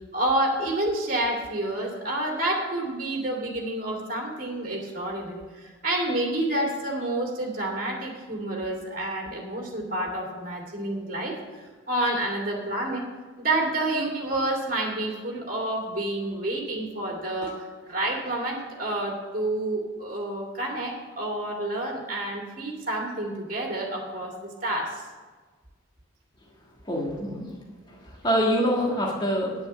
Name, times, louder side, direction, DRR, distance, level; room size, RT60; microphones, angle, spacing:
voice 1, 0.1-13.0 13.4-24.3 24.6-25.0, right 1 dB, 40° right, -1 dB, 2.5 m, -29 dB
voice 2, 26.8-27.5 27.9-29.5, equal, 20° left, -2 dB, 1.5 m, -25 dB
9.6 x 8.0 x 6.7 m, 1.4 s
head